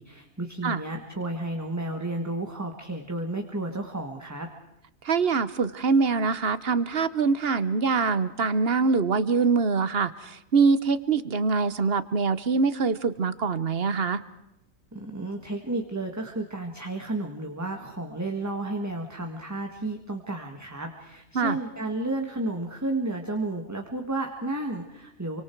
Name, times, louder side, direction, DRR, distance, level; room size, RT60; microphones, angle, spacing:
voice 1, 0.0-4.5 14.9-25.4, right 2 dB, 10° right, 3 dB, 1.7 m, -32 dB
voice 2, 5.0-14.2 21.3-21.6, right 4 dB, 50° right, 14 dB, 1.2 m, -24 dB
29.0 x 25.0 x 4.6 m, 0.87 s
omnidirectional pair, 1.4 m